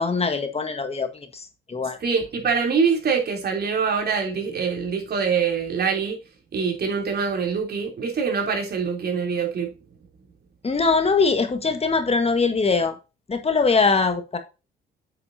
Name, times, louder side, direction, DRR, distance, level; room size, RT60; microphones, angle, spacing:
voice 1, 0.0-2.0 10.6-12.9 13.3-14.4, left 4 dB, 30° left, 1.5 m, -22 dB
voice 2, 2.0-6.2 6.5-9.7, right 5 dB, 55° right, 3.3 m, -24 dB
8.6 x 6.7 x 2.7 m
cardioid pair, 90°, 20 cm